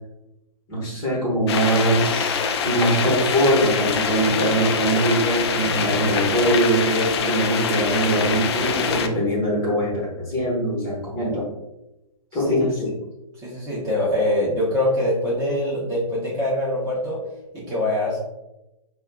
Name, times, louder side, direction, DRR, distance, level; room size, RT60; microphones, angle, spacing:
voice 1, 0.7-11.5 12.3-12.9, right 1 dB, 20° left, -4 dB, 1.2 m, -22 dB
sound 1, 1.5-9.1, left 6 dB, 45° left, 0.4 m, -24 dB
voice 2, 13.4-17.2 17.5-18.2, left 1 dB, 20° right, -7 dB, 0.8 m, -23 dB
5.2 x 2.4 x 2.2 m, 0.94 s
hypercardioid pair, 150°, 19 cm